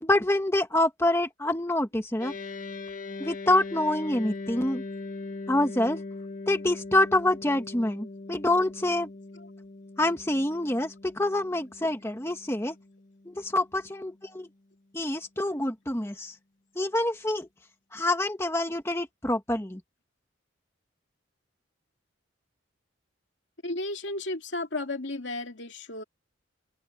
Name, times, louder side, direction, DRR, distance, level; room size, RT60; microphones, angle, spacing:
voice 1, 0.0-2.3 3.2-4.8 5.5-6.0 6.5-9.1 10.0-12.8 13.2-14.5 14.9-16.3 16.7-17.5 17.9-19.8, left 1 dB, 15° left, 1.3 m, -26 dB
sound 1, 2.2-13.7, left 3 dB, 40° left, 1.4 m, -41 dB
voice 2, 23.6-26.0, left 2 dB, 65° left, 2.4 m, -34 dB
head